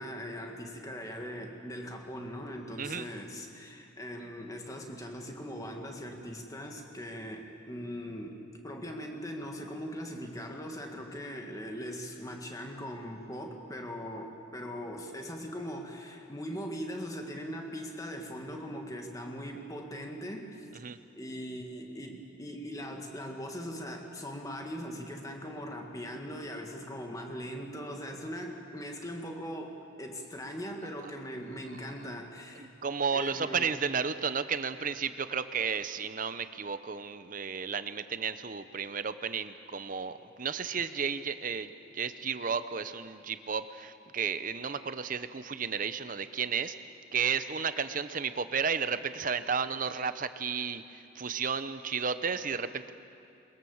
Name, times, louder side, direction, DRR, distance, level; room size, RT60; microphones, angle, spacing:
voice 1, 0.0-20.7 21.2-32.7 33.1-33.7, equal, 15° left, 2 dB, 1.9 m, -40 dB
voice 2, 2.8-3.1 20.8-21.0 32.6-46.7 47.1-52.9, right 6 dB, 40° right, 12 dB, 0.7 m, -33 dB
22.0 x 21.5 x 7.3 m, 2.6 s
head